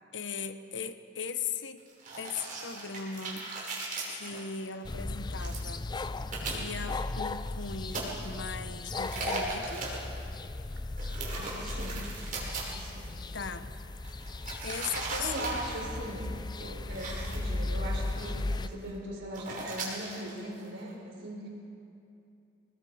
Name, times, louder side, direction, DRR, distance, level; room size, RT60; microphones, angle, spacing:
voice 1, 0.1-1.8 2.2-3.7 4.1-6.2 6.5-9.9 13.3-13.7 14.6-15.6, left 6 dB, 70° left, 10 dB, 1.0 m, -38 dB
sound 1, 1.9-4.6 5.4-5.6 6.1-6.5 7.6-8.0 9.0-10.0 11.0-13.1 14.0-15.9 16.5-16.7 16.9-17.4 18.1-18.2 18.4-18.9 19.3-20.9, right 3 dB, 45° right, 5.6 m, -38 dB
sound 2, 4.8-18.7, left 2 dB, 25° left, 0.5 m, -36 dB
voice 2, 11.3-12.1 12.6-13.1 15.2-16.3 16.6-21.5, right 1 dB, 70° right, -1 dB, 4.9 m, -40 dB
28.0 x 21.0 x 5.1 m, 2.7 s
head